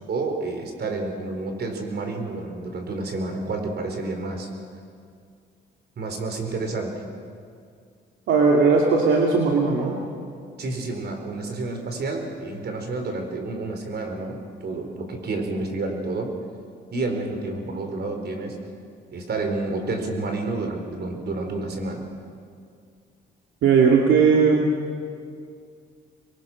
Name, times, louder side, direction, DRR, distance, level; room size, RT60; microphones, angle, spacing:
voice 1, 0.1-4.5 6.0-6.9 10.6-16.3 16.9-18.6 19.1-22.1, right 3 dB, 55° right, 4 dB, 4.6 m, -29 dB
voice 2, 8.3-10.0 23.6-24.7, right 5 dB, 80° right, -1 dB, 2.4 m, -18 dB
26.5 x 22.5 x 6.4 m, 2.2 s
cardioid pair, 90°, 20 cm